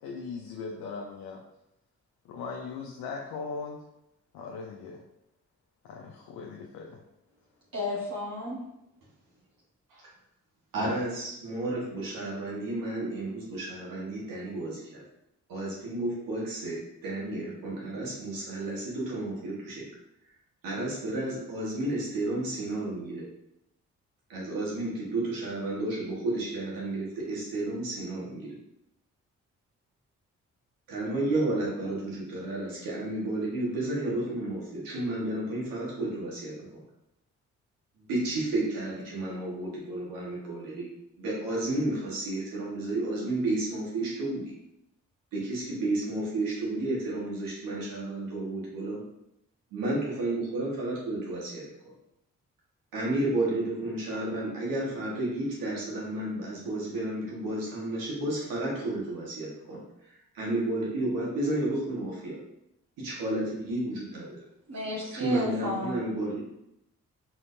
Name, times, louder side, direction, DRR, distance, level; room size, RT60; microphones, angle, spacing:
voice 1, 0.0-1.4 2.2-3.8 4.3-5.0 5.8-7.0, left 4 dB, 80° left, 0 dB, 0.6 m, -39 dB
voice 2, 7.7-8.6 64.7-66.0, left 1 dB, 50° right, -7 dB, 1.5 m, -33 dB
voice 3, 10.7-15.0 15.5-19.8 20.6-23.2 24.3-28.5 30.9-36.8 38.1-40.9 41.2-44.4 45.3-49.0 49.7-51.6 52.9-59.8 60.3-62.3 63.0-64.4 65.1-66.4, right 2 dB, 80° right, -4 dB, 1.6 m, -32 dB
4.3 x 3.8 x 2.6 m, 0.82 s
supercardioid pair, 45°, 33 cm